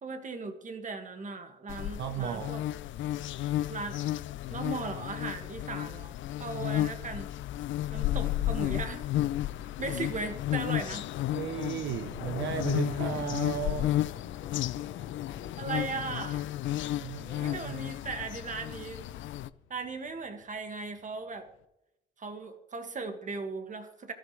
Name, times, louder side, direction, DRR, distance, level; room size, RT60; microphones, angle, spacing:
voice 1, 0.0-2.6 3.7-4.0 4.5-6.1 6.4-7.3 7.9-9.3 9.8-11.0 15.6-16.5 17.4-19.0 19.7-21.5 22.2-24.1, right 4 dB, 40° right, 6 dB, 1.9 m, -37 dB
sound 1, 1.7-19.5, left 13 dB, 75° left, 0.5 m, -33 dB
voice 2, 2.0-2.6 11.3-13.9 17.0-17.8, right 8 dB, 70° right, 8 dB, 0.9 m, -35 dB
sound 2, 9.0-21.6, left 10 dB, 90° left, 0.9 m, -47 dB
16.0 x 13.0 x 3.2 m, 0.87 s
cardioid pair, 90°, 20 cm